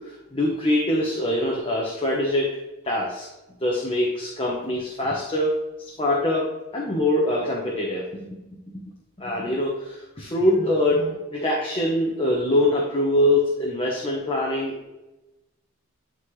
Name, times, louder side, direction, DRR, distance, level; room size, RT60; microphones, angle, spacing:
voice 1, 0.0-2.5 2.8-3.3 3.6-8.0 9.2-14.7, left 1 dB, 25° left, -3 dB, 1.0 m, -24 dB
10.5 x 3.9 x 3.2 m, 1.0 s
head